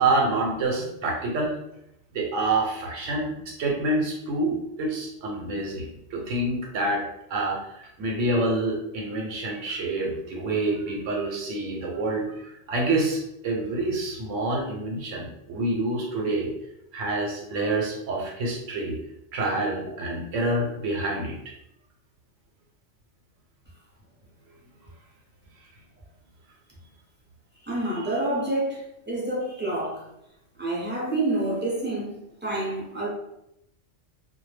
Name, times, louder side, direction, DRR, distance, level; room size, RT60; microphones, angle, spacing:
voice 1, 0.0-1.5 2.1-5.9 6.1-7.0 7.3-16.5 16.9-19.0 19.3-21.4, right 2 dB, 85° right, -1 dB, 1.0 m, -27 dB
voice 2, 27.6-30.1 30.6-33.1, right 2 dB, 15° right, -5 dB, 0.5 m, -28 dB
2.2 x 2.1 x 3.2 m, 0.81 s
omnidirectional pair, 1.2 m